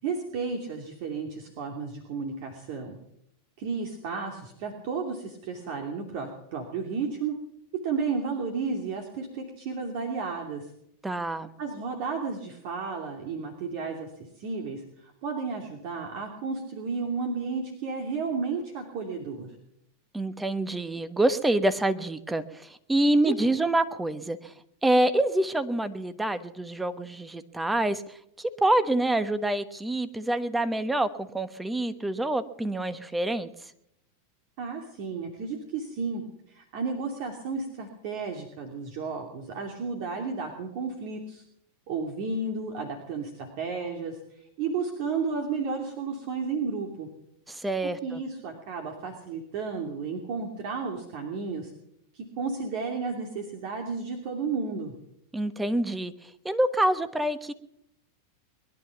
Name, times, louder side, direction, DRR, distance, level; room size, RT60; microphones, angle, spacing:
voice 1, 0.0-3.0 3.6-7.4 7.8-10.7 11.6-14.1 14.4-19.5 23.3-23.5 34.6-36.2 36.5-41.4 41.9-47.1 47.8-51.7 52.1-54.9, right 4 dB, 60° right, 2 dB, 2.7 m, -33 dB
voice 2, 11.0-11.5 20.1-24.5 24.8-28.0 28.4-33.5 47.5-48.2 55.3-56.1 56.4-57.5, right 1 dB, 10° right, 11 dB, 1.2 m, -26 dB
21.5 x 11.5 x 5.9 m, 0.76 s
hypercardioid pair, 110°, 0 cm